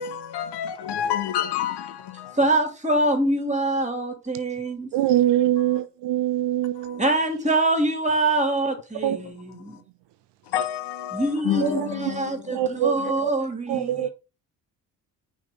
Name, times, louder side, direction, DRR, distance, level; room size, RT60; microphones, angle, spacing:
voice 1, 0.0-2.5 5.6-5.8 6.7-7.2 9.0-9.8 10.4-12.7 13.0-13.1 13.9-14.1, left 10 dB, 60° left, 1.0 m, -30 dB
voice 2, 2.3-4.9 7.0-9.8 11.1-14.1, right 2 dB, 15° right, 2.7 m, -24 dB
voice 3, 4.9-7.0 9.0-9.2 11.6-11.8 12.5-13.4 13.7-14.1, right 12 dB, 65° right, 0.8 m, -23 dB
5.9 x 4.2 x 5.2 m
hypercardioid pair, 50°, 45 cm